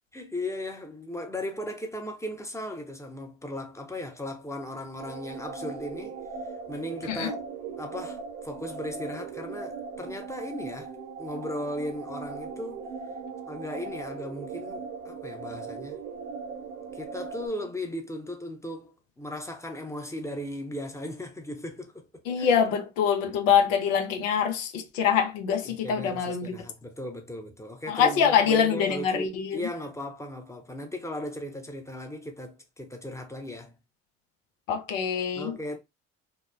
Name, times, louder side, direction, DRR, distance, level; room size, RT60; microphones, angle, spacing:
voice 1, 0.1-6.2 6.7-7.4 7.8-10.9 11.2-12.9 13.5-16.0 16.9-22.6 25.6-33.7 35.3-35.8, left 1 dB, 10° left, 0.7 m, -37 dB
sound 1, 5.0-17.5, right 5 dB, 85° right, 0.6 m, -39 dB
voice 2, 22.3-26.6 27.9-29.6 34.7-35.6, left 7 dB, 80° left, 0.6 m, -24 dB
2.8 x 2.0 x 2.2 m
hypercardioid pair, 60°, 38 cm